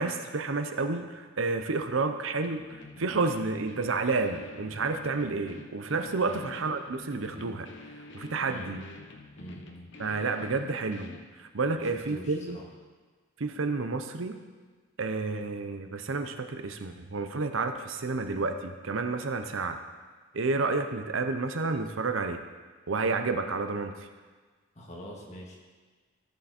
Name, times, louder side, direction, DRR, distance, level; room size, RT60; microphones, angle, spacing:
voice 1, 0.0-7.7 8.1-8.9 10.0-12.6 13.4-14.4 15.0-19.8 20.3-22.4 22.9-23.9, right 3 dB, 70° right, 7 dB, 0.8 m, -30 dB
sound 1, 2.4-11.3, left 2 dB, 65° left, 1.1 m, -47 dB
voice 2, 11.7-12.6 24.8-25.6, equal, 35° left, -2 dB, 2.0 m, -44 dB
14.5 x 7.4 x 4.3 m, 1.4 s
head